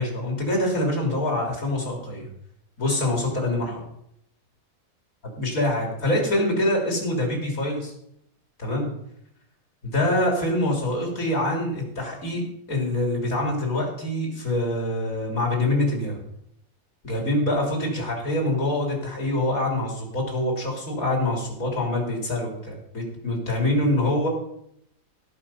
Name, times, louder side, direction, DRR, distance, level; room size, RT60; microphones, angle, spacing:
voice 1, 0.0-2.3 2.8-3.8 5.4-7.9 8.6-8.9 9.8-12.4 12.7-16.2 17.0-24.3, left 1 dB, 75° left, 0 dB, 3.8 m, -25 dB
17.5 x 5.9 x 5.5 m, 0.75 s
omnidirectional pair, 1.5 m